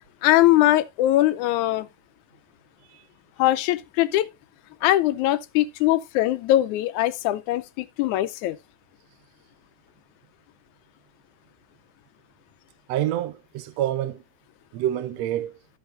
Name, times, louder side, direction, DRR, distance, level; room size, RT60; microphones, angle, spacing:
voice 1, 0.2-1.9 3.4-4.3 4.8-8.6, left 15 dB, 85° left, 2.0 m, -21 dB
voice 2, 12.9-14.2 14.7-15.5, right 12 dB, 75° right, 1.7 m, -27 dB
14.5 x 5.6 x 2.5 m
omnidirectional pair, 3.5 m